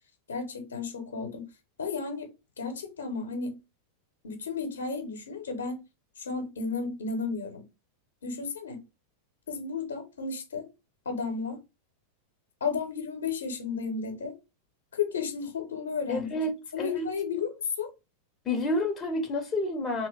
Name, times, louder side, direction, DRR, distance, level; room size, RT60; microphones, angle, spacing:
voice 1, 0.3-1.5 1.8-2.3 2.6-3.6 4.2-5.8 6.2-7.6 8.2-8.8 9.5-10.7 11.1-11.6 12.6-14.4 14.9-16.4 16.7-17.9, left 5 dB, 70° left, 0.8 m, -33 dB
voice 2, 16.1-17.1 18.5-20.1, left 1 dB, 20° left, 0.6 m, -29 dB
2.9 x 2.8 x 3.1 m
figure-of-eight pair, 90°, 0 cm